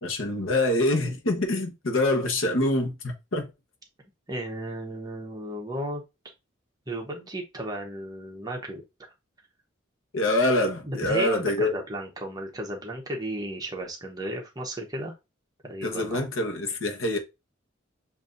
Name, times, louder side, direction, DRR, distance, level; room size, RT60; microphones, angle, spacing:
voice 1, 0.0-3.5 10.1-11.7 15.8-17.2, left 1 dB, 85° left, 1.1 m, -25 dB
voice 2, 4.3-6.0 6.9-8.8 10.8-15.1 15.6-16.2, right 1 dB, 20° right, 0.9 m, -34 dB
7.0 x 2.7 x 2.5 m
head